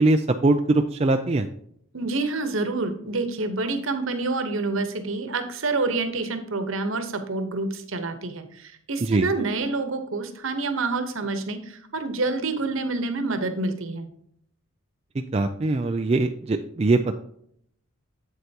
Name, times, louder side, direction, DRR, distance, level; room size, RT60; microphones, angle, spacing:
voice 1, 0.0-1.5 9.1-9.3 15.3-17.2, right 2 dB, 30° right, 5 dB, 0.3 m, -22 dB
voice 2, 1.9-14.1, right 3 dB, 65° right, 8 dB, 1.0 m, -27 dB
8.0 x 7.8 x 2.8 m, 0.69 s
head